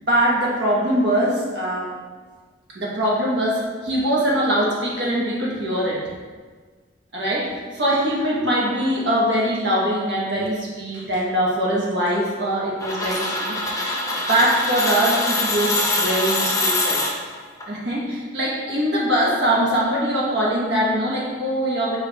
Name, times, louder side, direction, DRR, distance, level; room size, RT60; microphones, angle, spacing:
voice 1, 0.0-1.9 2.7-6.0 7.1-17.0 17.7-22.0, equal, 75° right, -4 dB, 1.2 m, -22 dB
sound 1, 12.8-17.6, left 2 dB, 20° left, 0.6 m, -23 dB
4.7 x 3.2 x 3.3 m, 1.4 s
head